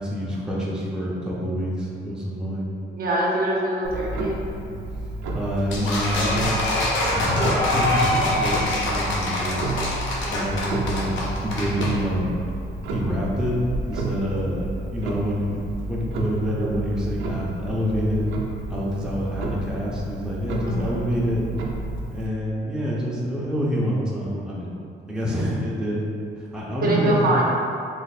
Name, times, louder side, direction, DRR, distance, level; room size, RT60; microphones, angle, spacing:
voice 1, 0.0-2.7 5.3-6.6 7.1-9.7 10.3-12.4 12.9-15.6 15.9-18.2 18.7-21.4 22.1-24.7 25.1-26.1 26.4-27.3, equal, 5° right, -6 dB, 0.6 m, -27 dB
voice 2, 2.9-4.4 20.6-21.0 26.8-27.4, right 1 dB, 50° right, -4 dB, 0.6 m, -23 dB
Clock, 3.8-22.3, right 2 dB, 85° right, 0.4 m, -31 dB
sound 1, 5.7-11.9, left 1 dB, 70° left, 0.7 m, -25 dB
3.2 x 2.0 x 4.1 m, 2.5 s
cardioid pair, 90°, 20 cm